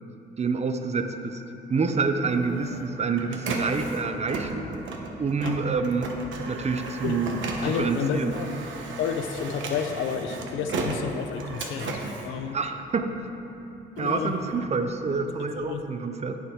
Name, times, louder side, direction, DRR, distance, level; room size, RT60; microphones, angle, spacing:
voice 1, 0.4-1.4 1.7-4.7 5.2-6.1 6.5-8.4 12.5-13.2 14.0-16.4, right 4 dB, 35° right, 7 dB, 0.7 m, -27 dB
Printer, 1.9-13.2 13.7-15.6, right 3 dB, 75° right, 1.1 m, -36 dB
voice 2, 7.6-8.5 9.0-12.6 14.0-14.4 15.4-15.9, left 7 dB, 90° left, 7 dB, 0.7 m, -30 dB
10.0 x 8.5 x 3.6 m, 2.9 s
cardioid pair, 90°, 20 cm